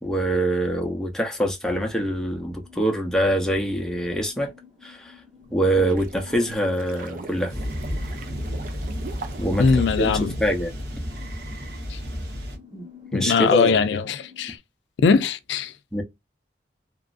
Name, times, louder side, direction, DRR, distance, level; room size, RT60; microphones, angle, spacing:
voice 1, 0.0-4.5 4.8-5.1 5.5-7.5 9.4-9.7 10.0-10.7 12.7-12.8 13.1-13.8 15.9-16.0, right 1 dB, 5° left, 0.6 m, -24 dB
sound 1, 2.2-14.6, left 6 dB, 30° right, 1.1 m, -49 dB
sound 2, 5.4-10.8, right 4 dB, 50° right, 0.4 m, -41 dB
sound 3, 7.5-12.6, equal, 80° right, 1.1 m, -31 dB
voice 2, 9.6-10.3 11.9-12.0 13.1-14.6 15.0-15.7, left 5 dB, 85° left, 0.4 m, -21 dB
2.9 x 2.5 x 2.4 m
head